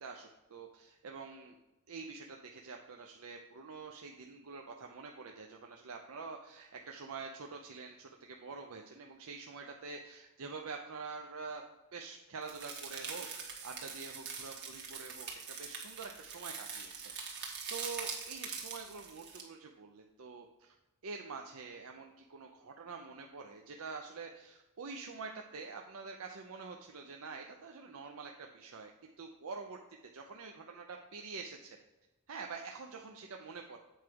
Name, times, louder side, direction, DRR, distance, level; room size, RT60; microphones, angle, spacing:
voice 1, 0.0-1.5 1.9-11.6 11.9-20.7 21.0-29.8 30.1-31.8 32.3-33.8, right 4 dB, 70° right, 2 dB, 0.6 m, -46 dB
sound 1, 12.5-19.4, right 5 dB, 50° right, 1.4 m, -43 dB
8.1 x 4.7 x 4.6 m, 1.0 s
head